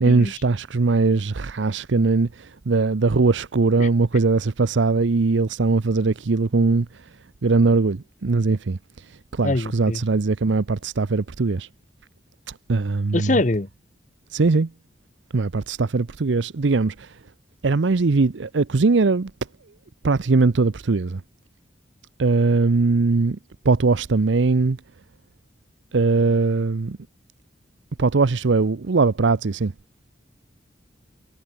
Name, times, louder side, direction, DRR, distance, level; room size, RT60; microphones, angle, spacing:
voice 1, 0.0-6.9 7.4-8.8 9.3-11.7 12.5-13.3 14.3-14.7 15.3-17.1 17.6-19.3 20.0-21.2 22.2-23.4 23.6-24.8 25.9-27.0 28.0-29.7, right 3 dB, 90° right, 0.7 m, -20 dB
voice 2, 9.4-10.0 13.1-13.7, left 2 dB, 40° left, 0.9 m, -23 dB
head